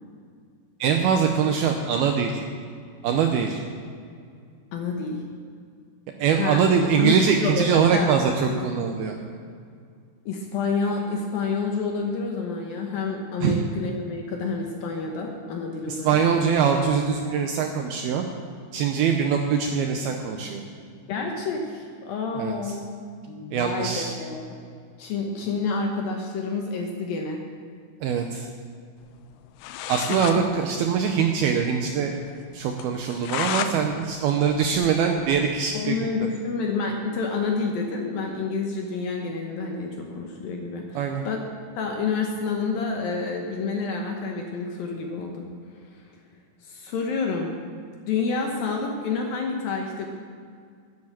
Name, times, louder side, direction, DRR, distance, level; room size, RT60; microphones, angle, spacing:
voice 1, 0.8-2.4 3.0-3.6 6.2-9.2 13.4-13.6 15.9-18.2 18.7-20.6 22.4-22.5 23.5-24.1 28.0-28.5 29.9-32.2 32.5-36.0 41.0-41.2, right 6 dB, 80° right, 4 dB, 2.3 m, -23 dB
voice 2, 4.7-5.2 6.4-6.6 7.0-8.2 8.5-8.6 10.3-16.2 21.1-22.9 23.3-24.4 25.0-27.4 30.1-30.4 35.7-41.5 41.8-45.5 45.8-45.9 46.6-47.5 48.0-50.1, left 4 dB, 70° left, 1 dB, 2.4 m, -29 dB
sound 1, 29.3-29.4 29.6-30.4 30.7-30.8 31.1-31.2 31.6-31.7 32.1-32.2 32.8-33.7 34.1-35.5, left 10 dB, 85° left, 2.9 m, -32 dB
11.5 x 10.5 x 7.6 m, 2.2 s
omnidirectional pair, 5.2 m